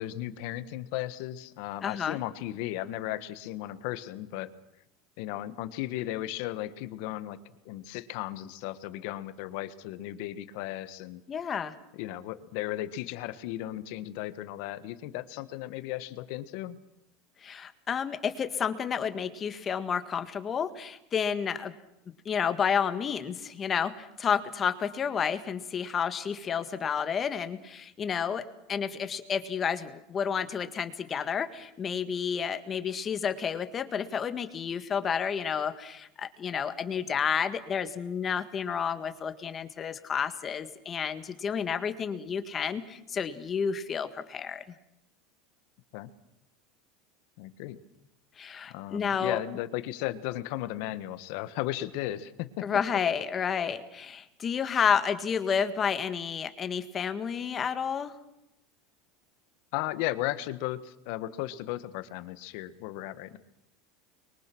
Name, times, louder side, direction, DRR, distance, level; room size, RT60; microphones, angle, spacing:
voice 1, 0.0-4.5 5.2-7.4 7.6-11.2 11.9-16.8 45.9-46.1 47.4-47.8 48.7-52.7 59.7-63.4, left 15 dB, 60° left, 13 dB, 1.5 m, -35 dB
voice 2, 1.8-2.2 11.3-11.7 17.4-21.7 22.3-28.4 28.7-44.6 48.4-49.4 52.6-58.1, left 7 dB, 25° left, 10 dB, 1.8 m, -30 dB
30.0 x 23.0 x 6.2 m, 0.85 s
supercardioid pair, 145°, 0 cm